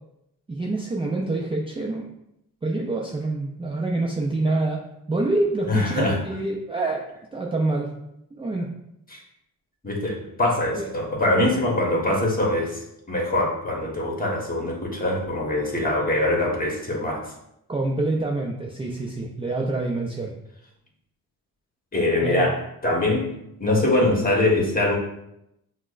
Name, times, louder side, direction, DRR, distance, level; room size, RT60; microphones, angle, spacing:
voice 1, 0.5-2.1 2.6-4.8 5.1-7.9 8.3-8.7 10.7-10.9 17.7-20.3 22.2-22.5, right 2 dB, 15° right, -1 dB, 0.4 m, -26 dB
voice 2, 5.6-6.2 9.1-9.2 9.8-17.2 21.9-23.3 23.6-25.0, left 1 dB, 25° left, -1 dB, 1.2 m, -23 dB
5.8 x 2.1 x 2.4 m, 0.82 s
cardioid pair, 80°, 35 cm